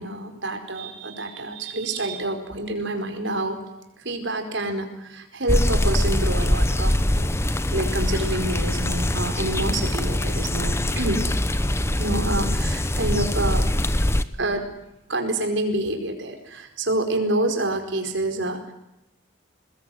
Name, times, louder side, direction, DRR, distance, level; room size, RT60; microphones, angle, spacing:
voice 1, 0.0-3.6 4.0-7.3 7.7-11.3 11.9-14.1 14.4-14.7 15.1-18.7, right 1 dB, 60° right, 5 dB, 4.7 m, -27 dB
sound 1, 5.5-14.2, left 1 dB, 15° left, 0.9 m, -23 dB
22.5 x 20.5 x 9.3 m, 0.88 s
head